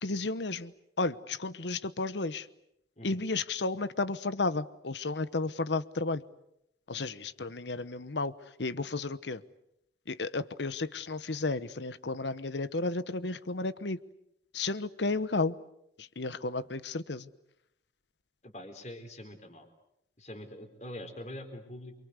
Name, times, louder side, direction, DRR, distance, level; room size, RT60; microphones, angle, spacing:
voice 1, 0.0-2.5 3.0-6.2 6.9-9.4 10.1-14.0 14.5-15.6 16.0-17.3, left 3 dB, 80° left, 15 dB, 1.1 m, -33 dB
voice 2, 18.4-19.7 20.2-21.9, left 1 dB, 40° left, 6 dB, 4.2 m, -44 dB
28.5 x 25.0 x 8.2 m, 0.81 s
head